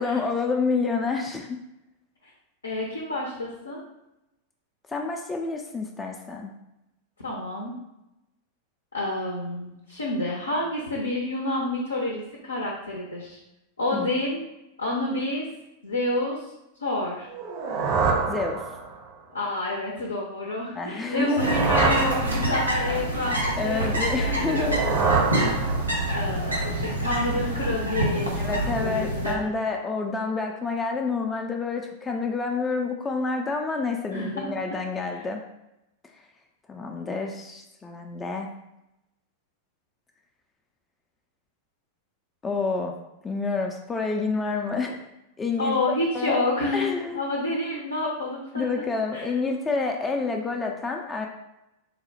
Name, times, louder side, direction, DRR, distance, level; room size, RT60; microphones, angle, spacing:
voice 1, 0.0-1.6 4.9-6.5 13.9-14.1 18.3-18.6 20.8-21.5 23.6-24.8 28.4-35.4 36.7-38.5 42.4-42.9 43.2-45.0 45.4-45.8 46.1-46.5 46.7-47.2 48.5-51.3, left 4 dB, 15° left, 2 dB, 0.3 m, -28 dB
voice 2, 2.6-3.8 7.2-7.7 8.9-13.4 13.8-14.4 14.8-15.5 15.8-16.5 16.8-17.3 19.3-25.2 26.1-29.4 34.1-34.5 35.1-35.2 45.6-48.8 49.1-49.3, left 2 dB, 75° left, -1 dB, 0.5 m, -29 dB
sound 1, 17.3-19.1 21.0-22.9 24.4-26.2, right 5 dB, 45° right, 0.6 m, -27 dB
sound 2, 21.4-29.3, right 1 dB, 85° right, 0.7 m, -27 dB
4.0 x 2.0 x 2.7 m, 0.90 s
figure-of-eight pair, 90°, 0 cm